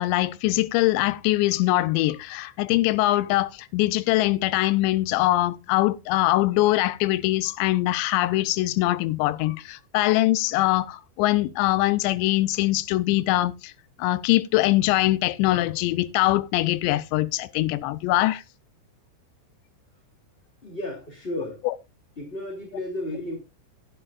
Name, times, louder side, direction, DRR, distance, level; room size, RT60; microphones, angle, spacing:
voice 1, 0.0-13.7 14.0-18.4 21.6-21.7, left 17 dB, 80° left, 2.7 m, -23 dB
voice 2, 20.6-21.7 22.2-23.4, left 1 dB, 15° left, 2.1 m, -33 dB
15.0 x 11.5 x 2.5 m
omnidirectional pair, 5.7 m